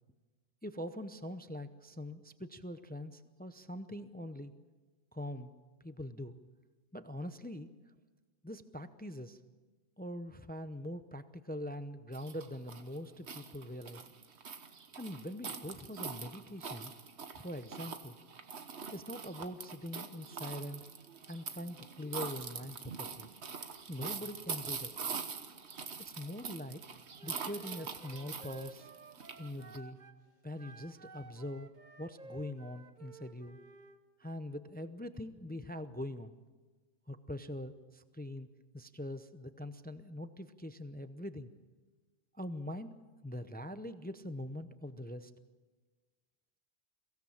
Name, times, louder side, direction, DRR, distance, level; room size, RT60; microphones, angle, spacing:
voice 1, 0.6-4.5 5.1-5.5 5.8-6.3 6.9-7.7 8.4-9.4 10.0-14.0 15.0-16.9 17.3-18.1 18.9-20.8 21.3-23.3 23.9-24.9 26.0-26.8 27.2-28.9 29.4-30.0 30.4-31.7 32.0-33.6 34.2-36.3 37.1-38.5 38.7-41.5 42.4-43.0 43.2-45.3, left 1 dB, 10° left, 11 dB, 0.5 m, -43 dB
sound 1, 12.1-29.8, right 5 dB, 75° right, 1.5 m, -44 dB
Wind instrument woodwind instrument, 27.2-30.2 30.6-34.0, right 3 dB, 45° right, 1.0 m, -54 dB
23.0 x 16.5 x 7.2 m, 1.3 s
omnidirectional pair, 1.1 m